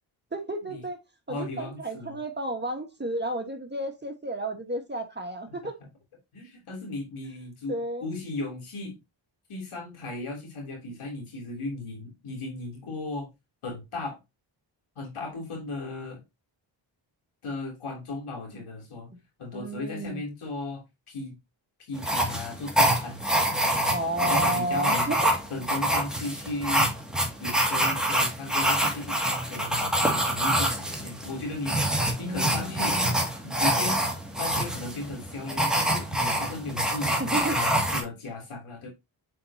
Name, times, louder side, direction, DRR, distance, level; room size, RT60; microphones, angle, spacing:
voice 1, 0.3-1.0 1.3-5.8 7.7-8.1 19.5-20.2 23.9-25.3 32.2-33.3 37.2-37.6, right 1 dB, 20° right, 1.5 m, -32 dB
voice 2, 1.3-2.2 5.5-5.6 6.3-7.7 8.0-9.0 9.5-13.3 13.6-14.2 14.9-16.2 17.4-19.1 19.4-21.3 21.9-23.9 24.2-25.1 25.5-26.9 27.4-33.0 33.4-34.1 34.4-38.9, left 2 dB, 85° left, 3.3 m, -36 dB
sound 1, 22.0-38.0, right 1 dB, ahead, 2.2 m, -26 dB
7.7 x 4.5 x 2.8 m
cardioid pair, 65°, 49 cm